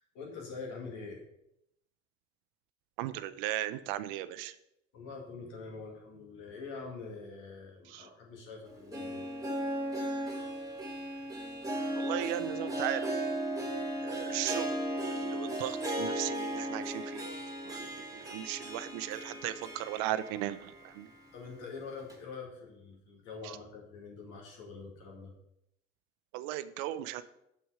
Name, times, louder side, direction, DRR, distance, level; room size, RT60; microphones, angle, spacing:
voice 1, 0.1-1.2 4.9-9.3 21.3-25.3, left 4 dB, 80° left, 0 dB, 2.2 m, -45 dB
voice 2, 3.0-4.5 7.9-8.1 12.0-13.2 14.0-17.3 17.6-21.1 26.3-27.2, right 13 dB, 80° right, 14 dB, 0.6 m, -37 dB
Harp, 8.7-20.8 21.1-21.2 22.1-22.2, right 1 dB, 10° right, 2.1 m, -36 dB
6.9 x 6.3 x 4.8 m, 0.81 s
hypercardioid pair, 55°, 31 cm